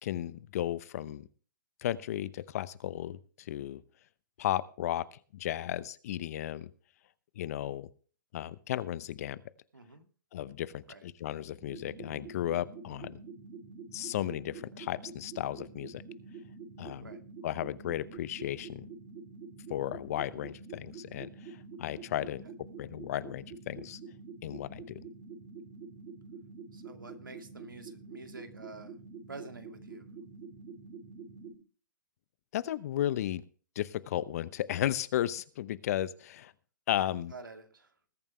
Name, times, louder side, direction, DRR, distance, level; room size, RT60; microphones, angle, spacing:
voice 1, 0.0-1.3 1.8-3.8 4.4-6.7 7.4-7.9 8.3-9.4 10.3-13.2 13.9-16.0 16.8-17.1 17.4-18.9 19.7-22.4 22.8-24.0 24.4-25.0 32.5-33.4 33.8-36.5 36.9-37.3, left 12 dB, 50° left, 17 dB, 0.8 m, -34 dB
voice 2, 9.7-10.1 10.9-11.0 17.0-17.2 22.2-22.5 26.7-28.9 29.3-30.1 37.3-37.9, right 3 dB, 90° right, 6 dB, 2.3 m, -48 dB
sound 1, 11.6-31.5, right 4 dB, 30° right, 3.3 m, -47 dB
20.5 x 8.9 x 3.2 m, 0.41 s
hypercardioid pair, 130°, 11 cm